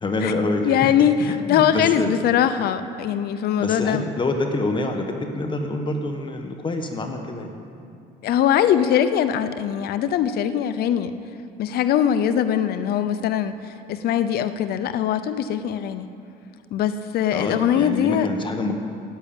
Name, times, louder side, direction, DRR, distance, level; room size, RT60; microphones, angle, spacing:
voice 1, 0.0-2.1 3.6-7.5 17.3-18.7, left 2 dB, 30° left, 4 dB, 1.3 m, -26 dB
voice 2, 0.6-4.1 8.2-11.1 11.6-13.6 13.9-16.1 16.7-18.3, left 9 dB, 65° left, 11 dB, 0.6 m, -21 dB
10.5 x 8.4 x 8.9 m, 2.4 s
cardioid pair, 110°, 17 cm